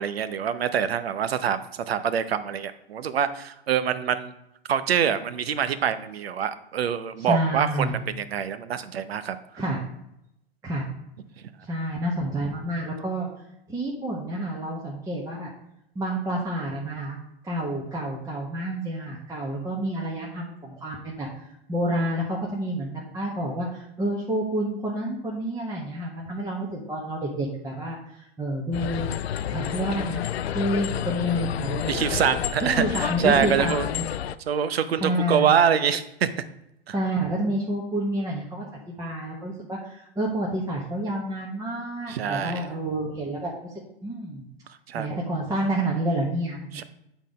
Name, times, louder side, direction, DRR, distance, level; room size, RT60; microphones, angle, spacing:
voice 1, 0.0-4.3 4.7-9.4 31.9-33.9 34.5-36.3 36.9-37.0 42.1-42.7 44.9-45.2 46.7-46.8, right 8 dB, 75° right, 13 dB, 0.8 m, -25 dB
voice 2, 7.2-8.0 9.6-9.8 10.6-10.9 11.6-13.3 13.7-15.5 15.9-17.2 17.4-29.1 29.5-30.2 30.5-32.2 32.6-34.2 35.0-35.5 36.9-43.7 44.0-44.4 44.9-46.8, right 1 dB, 10° right, -3 dB, 1.1 m, -29 dB
sound 1, 28.7-34.4, left 10 dB, 80° left, 0.5 m, -30 dB
8.2 x 4.0 x 5.2 m, 0.82 s
hypercardioid pair, 115°, 31 cm